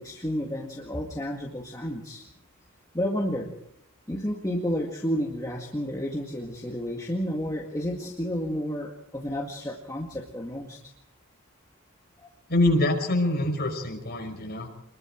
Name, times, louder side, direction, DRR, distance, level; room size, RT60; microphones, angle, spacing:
voice 1, 0.0-2.2 2.9-3.5 4.1-10.8 12.2-12.3, equal, 15° left, -1 dB, 2.0 m, -31 dB
voice 2, 12.5-14.7, left 1 dB, 45° left, 3 dB, 5.6 m, -25 dB
27.5 x 21.5 x 4.6 m, 0.76 s
head